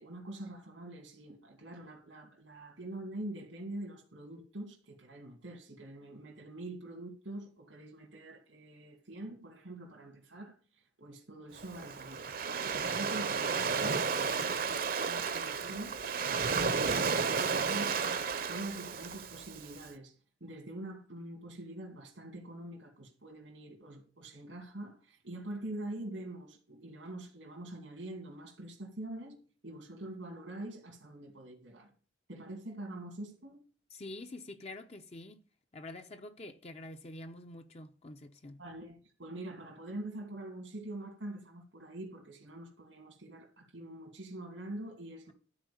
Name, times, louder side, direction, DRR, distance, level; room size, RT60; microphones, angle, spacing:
voice 1, 0.0-12.3 12.6-31.9 32.3-33.6 38.6-45.3, right 1 dB, 90° right, 2.6 m, -45 dB
Waves surf, 11.6-19.8, right 5 dB, 50° right, 0.9 m, -33 dB
voice 2, 33.9-35.4 35.7-38.6, left 2 dB, 35° left, 0.7 m, -46 dB
13.0 x 4.7 x 8.6 m
head